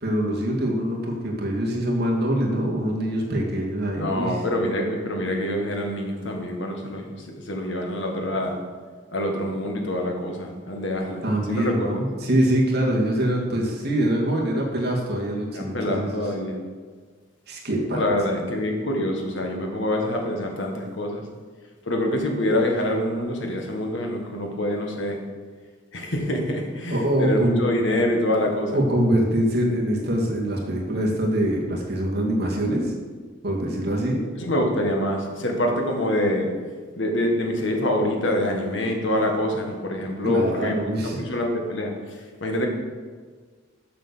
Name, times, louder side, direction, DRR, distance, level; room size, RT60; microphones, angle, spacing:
voice 1, 0.0-4.3 11.2-16.2 17.5-18.0 26.9-27.6 28.7-32.9 33.4-34.2 40.2-41.2, right 1 dB, 50° right, -1 dB, 1.9 m, -24 dB
voice 2, 3.9-8.6 9.1-12.0 15.5-16.6 17.9-21.2 21.8-25.2 25.9-28.8 34.3-36.5 37.0-42.7, left 1 dB, 65° left, 2 dB, 1.6 m, -26 dB
7.4 x 6.7 x 6.8 m, 1.5 s
head